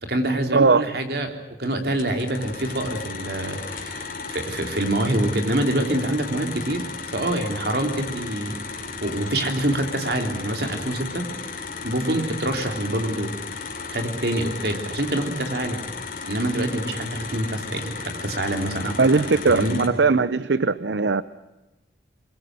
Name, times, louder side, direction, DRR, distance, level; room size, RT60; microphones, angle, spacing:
voice 1, 0.0-8.6 9.0-11.3 11.8-13.3 13.9-15.8 16.2-19.0 19.5-19.8, right 1 dB, 65° right, 5 dB, 3.5 m, -26 dB
voice 2, 0.5-0.8 19.0-21.2, right 4 dB, 85° right, 15 dB, 0.7 m, -19 dB
sound 1, 2.0-19.9, left 4 dB, 50° left, 3.7 m, -35 dB
23.0 x 22.5 x 7.8 m, 1.0 s
head